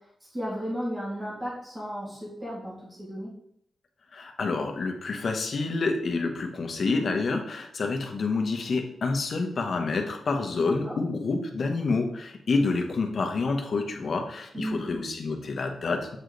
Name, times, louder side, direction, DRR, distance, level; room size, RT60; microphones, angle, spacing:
voice 1, 0.3-3.3 10.6-10.9 14.5-15.0, equal, 15° right, -7 dB, 2.5 m, -34 dB
voice 2, 4.1-16.2, left 3 dB, 45° left, 3 dB, 1.0 m, -28 dB
8.0 x 4.9 x 3.9 m, 0.75 s
wide cardioid pair, 170°, 0 cm